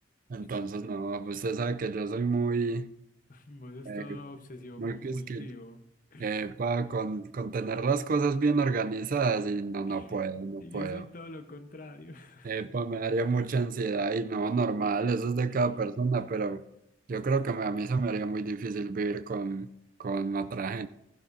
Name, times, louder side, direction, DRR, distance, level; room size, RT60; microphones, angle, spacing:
voice 1, 0.3-2.9 3.9-4.2 4.8-5.5 6.2-11.0 12.4-16.6 17.1-19.7 20.0-20.9, right 4 dB, 50° right, 0.4 m, -29 dB
voice 2, 3.3-5.8 6.1-6.3 9.9-10.3 10.6-12.7 15.5-15.6, left 2 dB, 50° left, 1.0 m, -46 dB
15.0 x 11.5 x 2.7 m
head